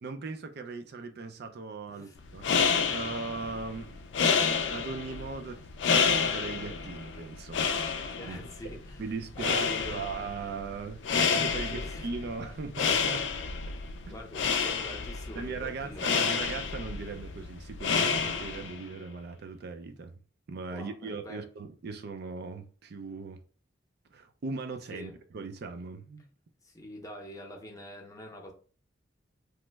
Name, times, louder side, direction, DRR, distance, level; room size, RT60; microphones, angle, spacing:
voice 1, 0.0-2.5 2.9-4.0 4.7-5.7 6.0-7.8 8.1-8.4 9.0-13.2 14.1-14.2 15.3-20.1 20.5-23.4 24.1-26.3, right 4 dB, 60° right, 0.4 m, -39 dB
sound 1, 2.2-18.8, left 6 dB, 65° left, 0.4 m, -30 dB
voice 2, 8.2-9.0 9.4-10.0 11.7-12.1 12.7-12.8 14.1-16.4 20.7-21.4 24.9-25.2 26.6-28.5, equal, 20° left, 0.7 m, -44 dB
3.0 x 2.0 x 3.3 m
head